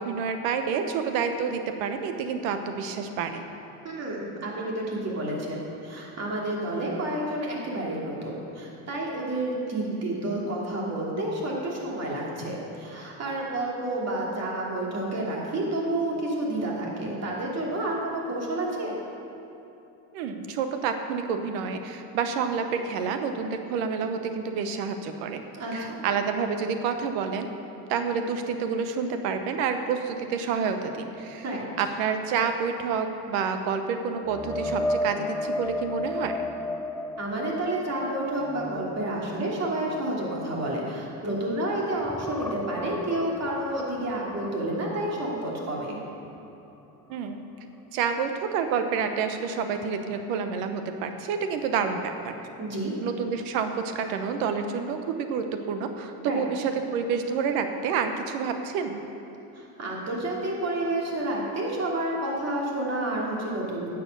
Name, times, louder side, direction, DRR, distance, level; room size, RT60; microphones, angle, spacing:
voice 1, 0.0-3.4 20.1-25.4 25.7-27.5 27.9-31.5 31.8-36.3 47.1-47.4 47.9-52.3 53.0-59.0, right 6 dB, 90° right, 7 dB, 1.0 m, -28 dB
voice 2, 3.8-19.0 25.6-26.0 31.4-31.7 37.2-46.0 52.6-52.9 56.2-56.5 59.6-63.9, right 1 dB, 40° right, -3 dB, 2.8 m, -30 dB
sound 1, 34.2-41.7 42.0-45.9 46.2-46.5 49.8-49.9, left 1 dB, 5° left, 0.3 m, -34 dB
10.0 x 7.0 x 6.6 m, 2.9 s
supercardioid pair, 95°, 39 cm